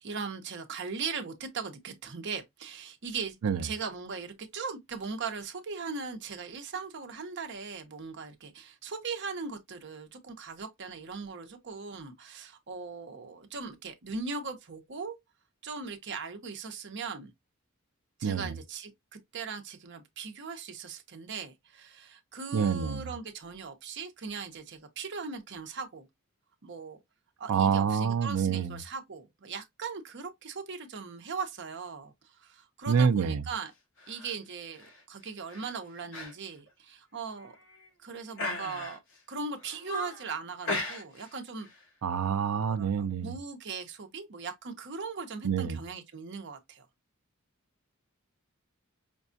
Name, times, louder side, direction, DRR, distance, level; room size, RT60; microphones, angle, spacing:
voice 1, 0.0-3.4 3.6-15.2 15.6-17.3 18.2-26.1 26.6-27.0 27.4-33.7 34.1-37.6 38.0-39.0 39.3-41.7 42.6-46.9, right 5 dB, 55° right, 0.8 m, -39 dB
voice 2, 18.2-18.6 22.5-23.0 27.5-28.8 32.9-33.4 42.0-43.3 45.4-45.8, right 6 dB, 75° right, 0.4 m, -27 dB
sound 1, 34.0-34.3 34.8-35.0 35.5-35.7 36.1-36.3 36.7-36.8 37.4-37.9 38.4-39.2 39.6-40.3 40.7-41.3 41.6-41.8, left 1 dB, 65° left, 1.0 m, -37 dB
5.2 x 2.3 x 2.6 m
head